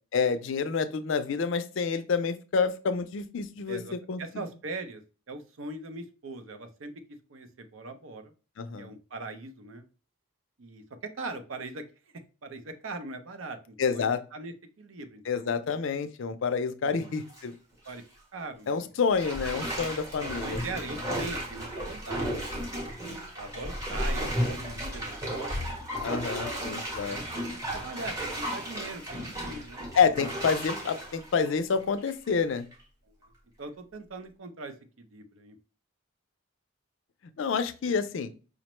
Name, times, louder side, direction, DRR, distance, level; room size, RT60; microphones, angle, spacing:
voice 1, 0.1-3.8 4.1-4.2 8.6-8.9 13.8-14.2 15.3-17.5 18.7-20.6 26.0-27.2 30.0-32.7 37.4-38.3, left 5 dB, 65° left, 11 dB, 0.4 m, -28 dB
voice 2, 3.7-5.0 5.3-6.9 7.3-8.3 8.8-9.8 10.6-10.8 11.2-11.8 12.4-15.6 16.8-17.1 17.9-18.0 18.3-18.9 20.2-22.7 23.3-25.5 25.8-26.2 27.0-29.9 33.1-33.2 33.6-35.6, right 3 dB, 70° right, 9 dB, 0.6 m, -41 dB
Bathtub (filling or washing), 17.0-17.4 17.9-18.0 19.2-32.3 32.7-32.8, equal, 15° right, 0.8 m, -34 dB
5.0 x 2.1 x 3.0 m, 0.34 s
head